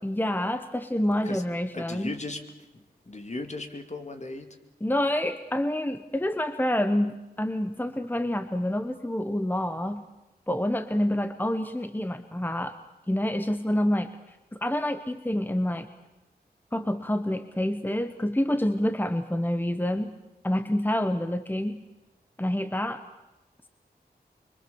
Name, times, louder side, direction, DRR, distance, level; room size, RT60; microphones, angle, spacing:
voice 1, 0.0-2.1 4.8-10.1 10.5-12.8 13.1-15.9 16.7-20.2 20.4-21.9 22.4-23.0, left 1 dB, 10° left, 10 dB, 1.0 m, -27 dB
voice 2, 1.7-2.5 2.7-4.6, left 2 dB, 45° left, 6 dB, 2.4 m, -37 dB
24.5 x 23.5 x 7.1 m, 0.99 s
wide cardioid pair, 75°, 17 cm